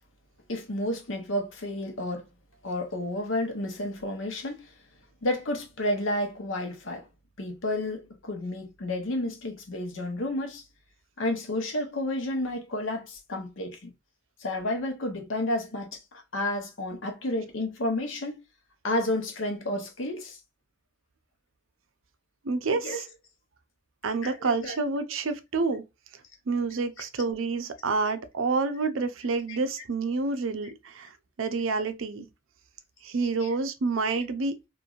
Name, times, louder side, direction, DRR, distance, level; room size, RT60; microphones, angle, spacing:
voice 1, 0.5-2.3 2.6-4.7 5.2-7.0 7.4-10.6 11.2-13.9 14.4-18.4 18.8-20.4 22.7-23.0 24.2-24.8 29.5-29.6 33.4-33.5, left 1 dB, 80° left, 0.9 m, -31 dB
voice 2, 22.4-23.0 24.0-25.8 26.5-31.1 31.4-32.3 33.0-34.7, right 4 dB, 90° right, 0.5 m, -28 dB
3.0 x 2.5 x 2.4 m
head